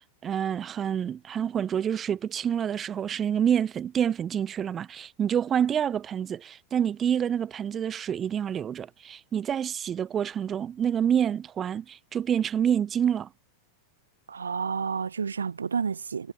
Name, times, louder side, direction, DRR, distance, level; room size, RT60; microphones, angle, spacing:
voice 1, 0.2-13.3, right 8 dB, 25° right, 1.4 m, -27 dB
voice 2, 14.3-16.3, right 6 dB, 70° right, 0.8 m, -30 dB
figure-of-eight pair, 90°, 0 cm